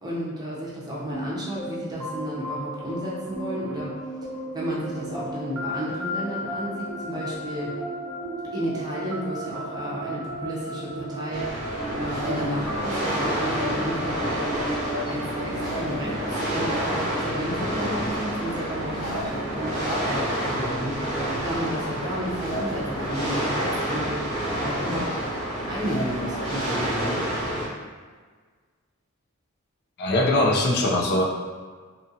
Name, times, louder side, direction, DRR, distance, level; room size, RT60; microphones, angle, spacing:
voice 1, 0.0-3.9 4.5-7.7 8.5-11.5 11.9-14.4 15.1-21.2 21.4-25.2 25.7-27.2, equal, 20° right, -6 dB, 0.7 m, -32 dB
sound 1, 1.1-20.6, equal, 85° right, 0.6 m, -35 dB
sound 2, 11.3-27.7, right 1 dB, 85° left, 1.0 m, -29 dB
voice 2, 30.0-31.2, left 1 dB, 50° left, -2 dB, 0.4 m, -21 dB
2.8 x 2.5 x 2.7 m, 1.5 s
head